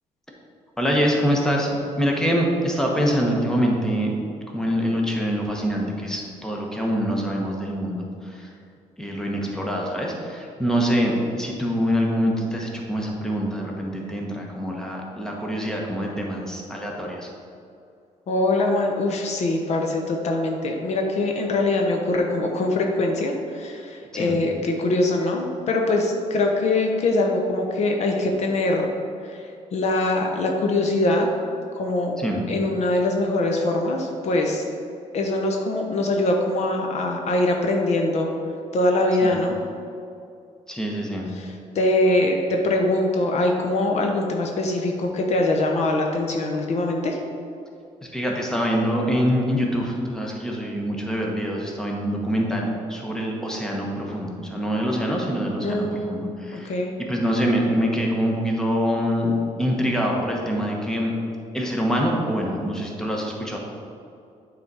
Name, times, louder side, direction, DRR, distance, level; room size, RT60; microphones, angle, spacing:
voice 1, 0.8-4.1 4.5-8.5 9.0-17.3 24.1-24.4 32.2-32.5 39.2-39.3 40.7-41.3 48.0-56.7 57.0-59.3 59.6-61.1 61.5-63.6, equal, 5° left, -1 dB, 1.1 m, -25 dB
voice 2, 18.3-28.9 29.2-31.3 31.7-34.6 35.1-38.3 38.7-39.6 41.3-47.2 55.6-56.9, left 2 dB, 55° left, 1 dB, 0.8 m, -23 dB
8.5 x 4.0 x 4.8 m, 2.5 s
cardioid pair, 120°, 13 cm